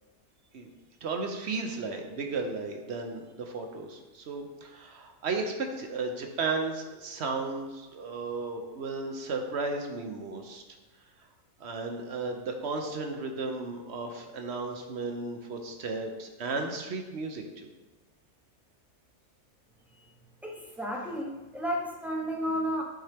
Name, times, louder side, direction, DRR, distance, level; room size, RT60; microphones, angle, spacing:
voice 1, 1.0-10.6 11.6-17.7, right 3 dB, 55° right, 4 dB, 1.0 m, -34 dB
voice 2, 20.4-22.8, equal, ahead, -1 dB, 0.7 m, -32 dB
9.2 x 4.3 x 3.4 m, 1.1 s
omnidirectional pair, 1.5 m